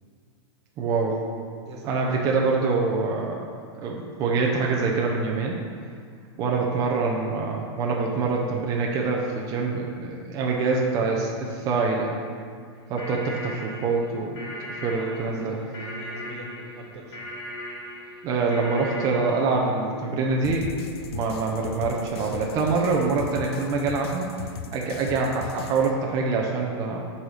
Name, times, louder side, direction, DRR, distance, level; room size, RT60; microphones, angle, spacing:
voice 1, 0.8-1.2 1.9-3.4 3.7-5.6 6.4-12.1 12.9-14.4 14.7-15.6 18.2-20.7 21.1-24.3 24.7-27.0, right 4 dB, 25° right, -1 dB, 0.6 m, -25 dB
voice 2, 1.6-2.2 14.9-17.2, right 2 dB, 75° right, 1 dB, 1.4 m, -42 dB
sound 1, 12.8-19.7, left 1 dB, 30° left, 1.5 m, -38 dB
sound 2, 20.4-25.9, left 6 dB, 60° left, 0.5 m, -37 dB
7.7 x 4.1 x 4.9 m, 2.1 s
supercardioid pair, 160°, 15 cm